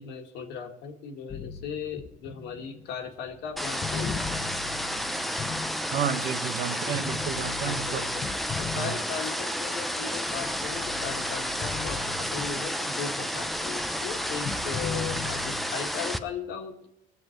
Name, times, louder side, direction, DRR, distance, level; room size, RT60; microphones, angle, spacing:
voice 1, 0.0-4.2 6.7-7.1 7.6-8.3 8.6-16.9, left 7 dB, 85° left, 4 dB, 1.9 m, -37 dB
sound 1, 1.3-6.4 6.9-9.6 10.1-12.9 13.2-15.9, left 6 dB, 35° left, 0.7 m, -39 dB
sound 2, 3.6-16.2, equal, ahead, 0.7 m, -31 dB
voice 2, 5.9-8.1, right 8 dB, 65° right, 9 dB, 1.1 m, -31 dB
19.5 x 7.3 x 4.5 m, 0.88 s
cardioid pair, 110°, 17 cm